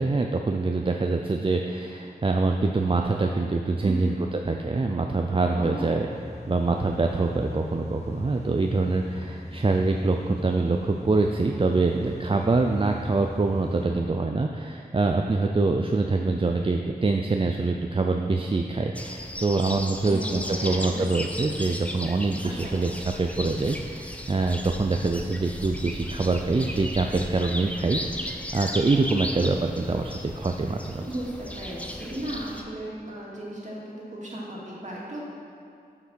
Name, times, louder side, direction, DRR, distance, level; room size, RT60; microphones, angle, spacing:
voice 1, 0.0-6.1 6.5-31.0, right 3 dB, 35° right, 3 dB, 0.5 m, -25 dB
voice 2, 3.8-4.1 5.5-6.0 20.0-21.0 22.4-22.8 31.0-35.3, right 1 dB, 50° right, -5 dB, 2.3 m, -35 dB
sound 1, 6.1-13.9, left 1 dB, 40° left, 1.0 m, -40 dB
sound 2, 18.9-32.6, left 1 dB, 10° left, 0.7 m, -36 dB
7.8 x 5.9 x 6.3 m, 2.5 s
wide cardioid pair, 70°, 16 cm